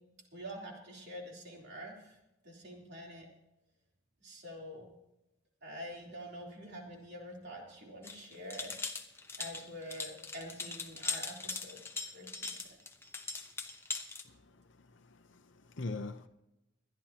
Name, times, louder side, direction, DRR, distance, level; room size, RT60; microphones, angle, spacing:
voice 1, 0.3-2.2 2.4-3.3 4.2-4.9 5.6-8.7 9.4-12.8, equal, 55° right, 3.4 m, -46 dB
sound 1, 8.0-14.2, left 4 dB, 10° left, 0.8 m, -40 dB
voice 2, 14.9-16.3, left 3 dB, 60° left, 0.7 m, -42 dB
24.5 x 10.5 x 2.9 m
head